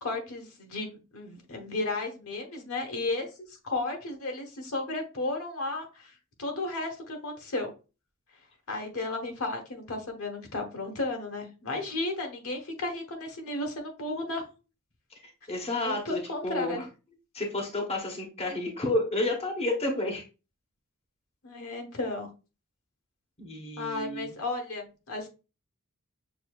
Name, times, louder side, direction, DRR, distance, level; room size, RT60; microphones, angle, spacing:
voice 1, 0.0-3.3 3.6-6.1 6.4-7.7 8.7-14.4 15.8-16.8 21.4-22.3 23.8-25.3, left 2 dB, 70° left, 3 dB, 1.2 m, -34 dB
voice 2, 15.2-16.9 17.3-20.2 23.4-24.3, left 2 dB, 30° left, 1 dB, 0.9 m, -31 dB
6.7 x 2.6 x 2.3 m, 0.31 s
head